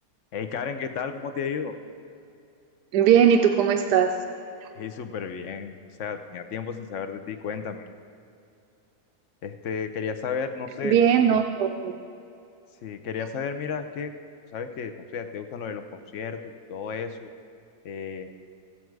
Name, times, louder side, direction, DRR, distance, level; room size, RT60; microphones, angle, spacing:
voice 1, 0.3-1.7 4.7-7.9 9.4-11.0 12.8-14.1 14.5-17.3 17.8-18.3, left 6 dB, 55° left, 7 dB, 1.0 m, -33 dB
voice 2, 2.9-4.1 10.8-12.0, right 8 dB, 85° right, 5 dB, 1.2 m, -19 dB
16.0 x 7.7 x 4.7 m, 2.6 s
omnidirectional pair, 1.7 m